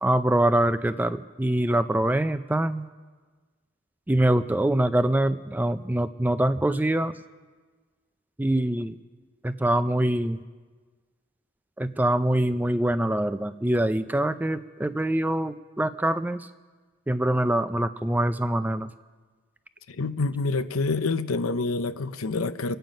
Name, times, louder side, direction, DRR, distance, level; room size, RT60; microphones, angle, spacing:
voice 1, 0.0-2.9 4.1-7.1 8.4-8.9 9.4-10.4 11.8-16.5 17.1-18.9, right 1 dB, 10° right, 11 dB, 0.4 m, -24 dB
voice 2, 20.0-22.8, left 3 dB, 85° left, 12 dB, 0.7 m, -27 dB
27.0 x 9.1 x 5.2 m, 1.4 s
head